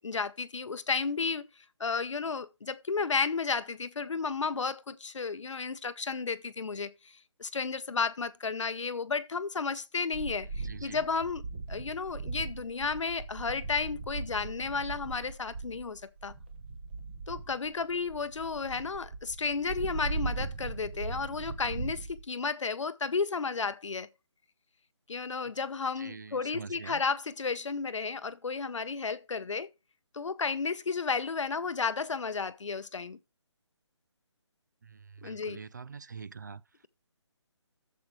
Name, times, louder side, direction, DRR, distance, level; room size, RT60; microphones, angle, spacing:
voice 1, 0.0-1.5 1.8-11.4 11.7-16.3 17.3-24.1 25.1-29.7 30.1-33.2 35.2-35.6, left 5 dB, 80° left, 0.9 m, -33 dB
sound 1, 10.1-22.2, right 3 dB, 20° right, 0.9 m, -39 dB
voice 2, 10.5-11.1 26.0-27.0 34.8-36.9, right 5 dB, 40° right, 0.4 m, -45 dB
11.5 x 7.5 x 3.1 m
hypercardioid pair, 170°, 15 cm